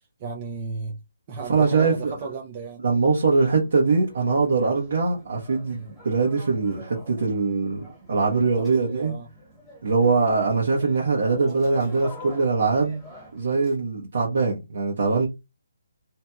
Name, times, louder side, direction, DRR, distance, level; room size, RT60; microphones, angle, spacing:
voice 1, 0.2-1.0 1.3-2.8 8.5-9.3, right 4 dB, 30° right, 0.5 m, -34 dB
voice 2, 1.5-2.1 2.8-9.1 9.8-13.0 13.3-15.3, right 4 dB, 65° right, 1.0 m, -22 dB
sound 1, 3.4-13.8, equal, ahead, 1.4 m, -46 dB
2.8 x 2.6 x 2.3 m
hypercardioid pair, 155°, 0 cm